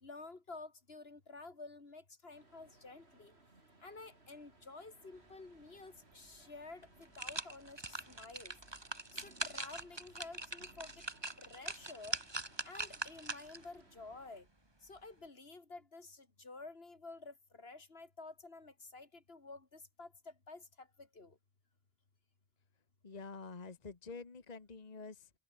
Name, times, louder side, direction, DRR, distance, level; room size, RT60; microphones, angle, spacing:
voice 1, 0.0-3.3 3.8-8.6 9.1-11.0 11.4-12.2 12.6-14.5 14.8-21.4, left 3 dB, 70° left, 2.9 m, -51 dB
sound 1, 2.3-14.4, right 2 dB, 85° right, 4.3 m, -65 dB
sound 2, 6.3-6.4 6.8-13.7 14.1-14.2, right 2 dB, 25° right, 1.8 m, -43 dB
voice 2, 23.0-25.3, left 4 dB, 40° left, 1.4 m, -48 dB
omnidirectional pair, 1.1 m